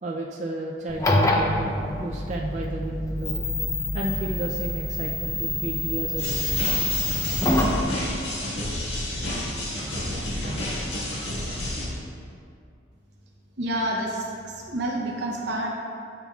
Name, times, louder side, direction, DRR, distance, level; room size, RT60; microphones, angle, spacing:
voice 1, 0.0-3.5 3.9-6.4, right 1 dB, 40° right, -2 dB, 0.4 m, -32 dB
sound 1, 0.9-7.8, left 1 dB, 15° left, 0.5 m, -26 dB
sound 2, 6.2-11.9, left 1 dB, 80° left, 1.6 m, -30 dB
voice 2, 13.6-15.7, right 1 dB, 65° right, -2 dB, 0.8 m, -28 dB
11.0 x 5.8 x 2.3 m, 2.4 s
head